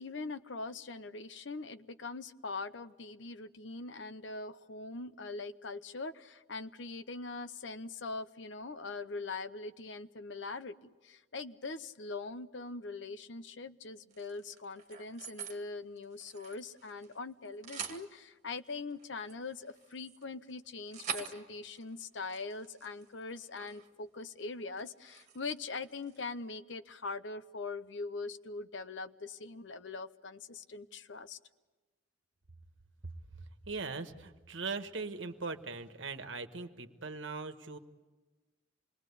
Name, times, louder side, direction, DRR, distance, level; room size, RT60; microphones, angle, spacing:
voice 1, 0.0-31.4, left 3 dB, 70° left, 13 dB, 0.8 m, -42 dB
sound 1, 14.1-15.6 16.0-17.2 17.4-18.0 18.9-23.9 24.2-24.5 24.8-26.3, right 7 dB, 40° right, 2.2 m, -46 dB
voice 2, 33.7-37.8, right 4 dB, 75° right, 8 dB, 1.4 m, -40 dB
27.0 x 21.0 x 8.4 m, 1.3 s
head